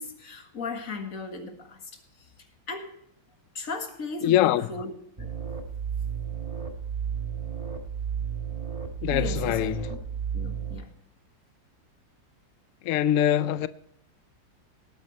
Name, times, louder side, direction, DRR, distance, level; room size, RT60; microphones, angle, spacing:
voice 1, 0.0-1.9 2.7-3.0 3.5-4.9 5.2-5.3 9.1-10.0 10.3-10.9, left 4 dB, 45° left, 2.0 m, -36 dB
voice 2, 4.2-4.7 9.0-9.9 12.8-13.7, left 12 dB, 90° left, 0.6 m, -23 dB
sound 1, 5.2-10.8, right 7 dB, 20° right, 1.2 m, -32 dB
18.5 x 9.5 x 3.1 m
omnidirectional pair, 2.0 m